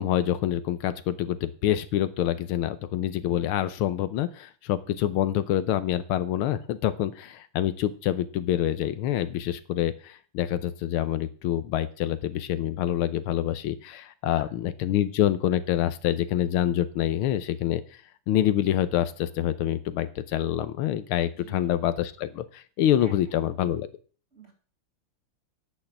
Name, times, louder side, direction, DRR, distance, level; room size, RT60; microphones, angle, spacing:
voice 1, 0.0-17.8 18.3-23.9, left 11 dB, 80° left, 13 dB, 1.6 m, -26 dB
voice 2, 21.4-21.7 23.0-23.1 24.3-24.5, right 3 dB, 35° right, 2 dB, 2.8 m, -48 dB
10.5 x 6.5 x 7.1 m, 0.41 s
omnidirectional pair, 2.4 m